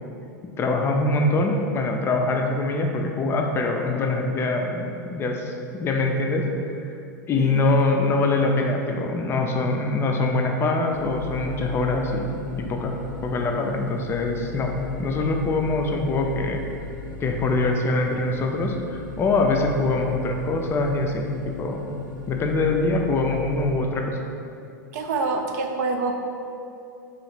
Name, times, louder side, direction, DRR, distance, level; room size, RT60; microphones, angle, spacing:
voice 1, 0.6-6.5 7.3-12.9 13.2-14.7 15.0-16.6 17.2-21.9 22.3-24.2, left 2 dB, 25° left, 2 dB, 0.4 m, -24 dB
sound 1, 10.9-23.8, left 4 dB, 70° left, 0.6 m, -37 dB
voice 2, 24.9-26.2, right 3 dB, 60° right, 3 dB, 0.4 m, -26 dB
2.8 x 2.4 x 4.2 m, 2.6 s
hypercardioid pair, 100°, 10 cm